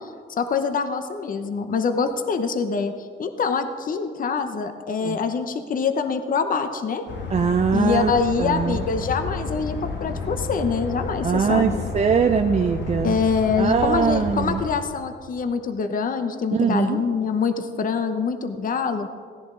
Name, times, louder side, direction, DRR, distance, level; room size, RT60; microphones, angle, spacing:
voice 1, 0.4-2.9 3.2-7.1 7.7-11.8 13.0-19.1, left 5 dB, 45° left, 8 dB, 0.8 m, -25 dB
sound 1, 7.1-14.7, left 3 dB, 65° left, 1.4 m, -31 dB
voice 2, 7.3-8.1 8.4-8.8 11.2-13.2 13.6-14.6 16.6-17.0, right 6 dB, 35° right, 5 dB, 0.5 m, -21 dB
16.5 x 10.5 x 3.8 m, 2.1 s
cardioid pair, 90°, 20 cm